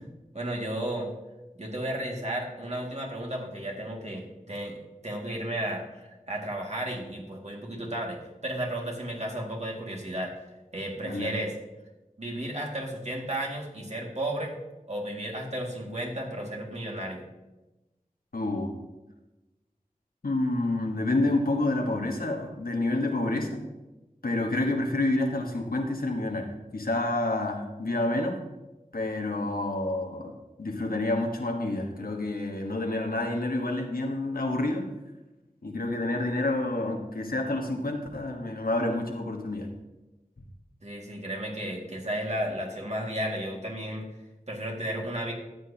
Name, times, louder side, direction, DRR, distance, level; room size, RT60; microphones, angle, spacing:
voice 1, 0.3-1.1 1.6-4.8 5.0-10.3 10.7-11.5 12.2-14.5 14.9-17.2 40.8-44.1 44.5-45.3, right 1 dB, 50° right, -1 dB, 2.1 m, -33 dB
voice 2, 11.0-11.3 18.3-18.7 20.2-23.6 24.2-26.5 26.7-28.4 28.9-30.3 30.6-34.8 35.6-39.7, left 2 dB, 90° left, 2 dB, 1.3 m, -28 dB
13.5 x 8.3 x 2.8 m, 1.1 s
wide cardioid pair, 45°, 15 cm